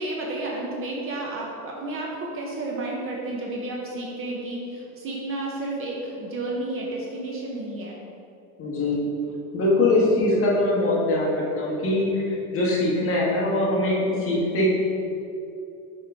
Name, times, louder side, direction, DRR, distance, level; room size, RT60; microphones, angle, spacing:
voice 1, 0.0-8.0, right 2 dB, 30° right, -2 dB, 0.8 m, -31 dB
voice 2, 8.6-9.1 9.5-14.7, left 2 dB, 30° left, -4 dB, 1.4 m, -22 dB
5.6 x 5.1 x 3.6 m, 2.7 s
supercardioid pair, 140°, 41 cm